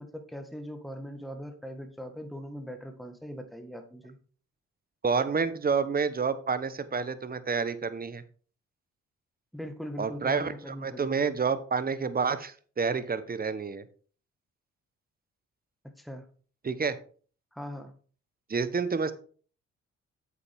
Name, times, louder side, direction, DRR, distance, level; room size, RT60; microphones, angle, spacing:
voice 1, 0.0-4.2 9.5-11.3 15.8-16.3 17.5-17.9, equal, ahead, 7 dB, 1.5 m, -40 dB
voice 2, 5.0-8.2 10.0-13.8 16.6-17.0 18.5-19.1, right 5 dB, 30° right, 13 dB, 1.0 m, -29 dB
8.4 x 7.4 x 3.5 m, 0.42 s
supercardioid pair, 65°, 30 cm